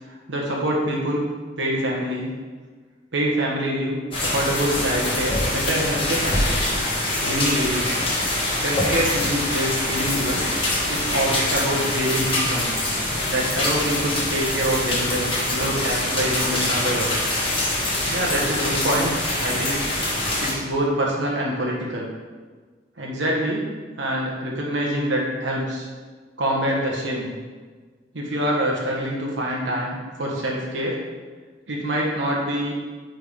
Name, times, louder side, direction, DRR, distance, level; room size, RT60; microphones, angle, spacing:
voice 1, 0.1-1.3 1.6-2.3 3.1-6.7 7.2-8.0 8.6-10.5 10.9-12.8 13.3-17.1 18.1-19.2 19.4-19.8 20.4-22.1 23.0-23.7 24.0-25.9 26.4-27.3 28.1-31.0 31.7-32.7, right 1 dB, 90° right, -3 dB, 1.1 m, -25 dB
rain on metallic roof, 4.1-20.5, left 1 dB, 30° left, 1.4 m, -24 dB
8.9 x 3.5 x 3.5 m, 1.4 s
head